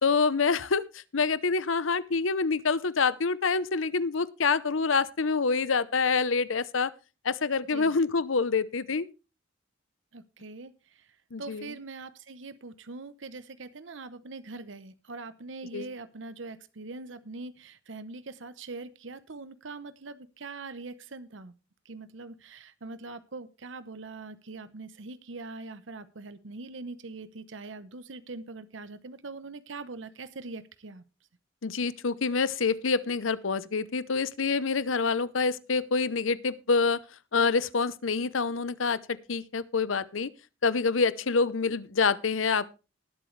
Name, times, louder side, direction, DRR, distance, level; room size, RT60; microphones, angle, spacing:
voice 1, 0.0-6.9 7.2-9.1 11.3-11.7 15.7-15.8 31.6-37.0 37.3-39.0 39.3-40.3 40.6-42.8, left 4 dB, 85° left, 17 dB, 0.8 m, -26 dB
voice 2, 10.1-21.5 21.8-31.0, right 3 dB, 75° right, 14 dB, 0.8 m, -42 dB
19.5 x 7.9 x 3.2 m, 0.30 s
head